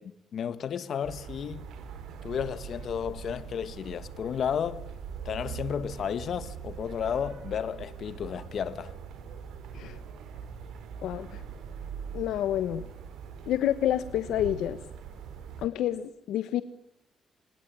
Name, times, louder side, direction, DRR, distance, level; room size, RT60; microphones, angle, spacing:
voice 1, 0.3-1.6 2.2-4.8 5.2-8.9, left 8 dB, 60° left, 1.9 m, -32 dB
sound 1, 1.0-15.7, right 7 dB, 85° right, 4.1 m, -42 dB
voice 2, 11.0-11.4 12.1-12.9 13.5-14.8 15.6-16.6, left 11 dB, 90° left, 1.2 m, -28 dB
27.5 x 20.5 x 9.2 m
cardioid pair, 100°, 0 cm